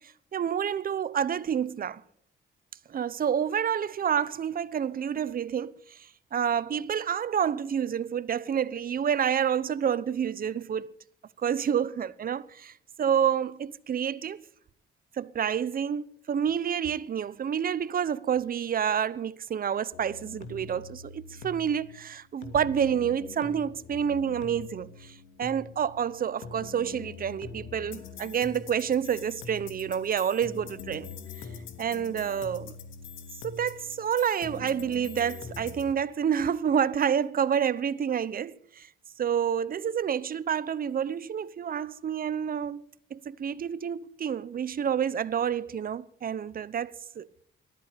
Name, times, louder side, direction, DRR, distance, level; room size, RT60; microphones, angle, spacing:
voice 1, 0.0-2.0 2.9-10.9 11.4-14.4 15.1-31.5 31.8-32.8 33.4-38.9 39.2-42.8 43.1-47.4, right 8 dB, 45° right, 0.9 m, -29 dB
sound 1, 19.9-35.9, left 5 dB, 75° left, 2.6 m, -44 dB
18.5 x 13.5 x 5.2 m
cardioid pair, 90°, 20 cm